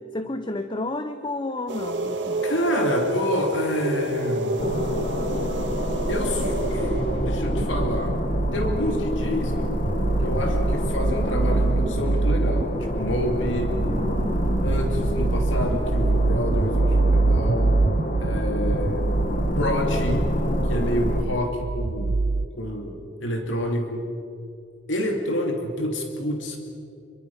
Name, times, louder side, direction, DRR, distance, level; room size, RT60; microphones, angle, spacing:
voice 1, 0.0-2.4 13.4-13.6, left 2 dB, 25° left, 9 dB, 0.7 m, -31 dB
sound 1, 1.7-7.3, right 1 dB, 65° right, 2.0 m, -28 dB
voice 2, 2.4-4.8 6.1-8.2 8.5-9.9 10.2-13.8 14.6-17.8 18.2-19.1 19.5-20.3 20.7-22.3 22.6-24.1 24.9-26.6, equal, 80° left, 3 dB, 2.5 m, -28 dB
sound 2, 4.6-21.2, equal, 40° left, 1.5 m, -27 dB
sound 3, 5.8-22.5, right 3 dB, 40° right, 0.4 m, -25 dB
26.5 x 23.5 x 5.8 m, 2.7 s
head